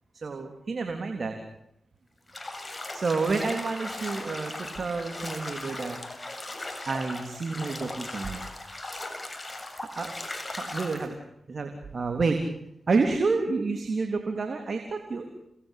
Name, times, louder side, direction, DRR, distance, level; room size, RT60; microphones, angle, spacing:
voice 1, 0.1-1.4 2.9-6.0 6.9-8.4 9.7-10.1 10.4-11.2 11.5-12.4 12.9-15.3, right 4 dB, 60° right, 5 dB, 3.5 m, -29 dB
Bathtub (filling or washing), 2.3-11.1, left 2 dB, 25° left, 7.5 m, -38 dB
29.5 x 20.0 x 8.6 m, 0.79 s
cardioid pair, 45°, 0 cm